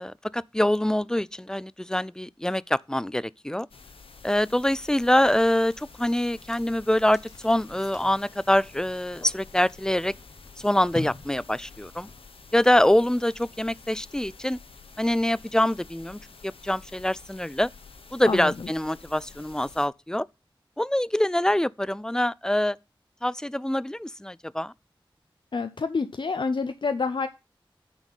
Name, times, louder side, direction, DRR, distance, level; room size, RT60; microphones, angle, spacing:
voice 1, 0.0-3.7 4.2-10.1 10.6-12.1 12.5-14.6 15.0-17.7 18.1-20.3 20.8-22.8 23.2-24.7, left 1 dB, 5° left, 0.3 m, -25 dB
sound 1, 3.7-19.9, left 4 dB, 85° left, 0.9 m, -49 dB
sound 2, 6.0-12.6, left 2 dB, 40° left, 1.4 m, -45 dB
voice 2, 25.5-27.3, left 4 dB, 60° left, 0.5 m, -27 dB
8.9 x 4.1 x 5.4 m
cardioid pair, 45°, 9 cm